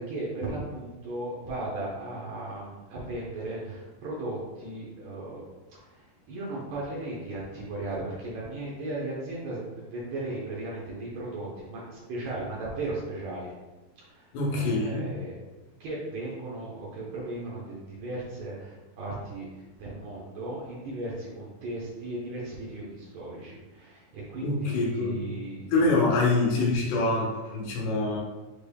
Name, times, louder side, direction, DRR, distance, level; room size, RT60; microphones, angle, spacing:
voice 1, 0.0-5.4 5.8-13.5 14.1-15.4 15.8-25.7, right 2 dB, 90° right, -5 dB, 1.5 m, -36 dB
voice 2, 14.3-15.1 24.4-25.2 25.7-28.2, left 2 dB, 90° left, -3 dB, 2.8 m, -25 dB
6.4 x 2.2 x 3.4 m, 1.1 s
omnidirectional pair, 4.4 m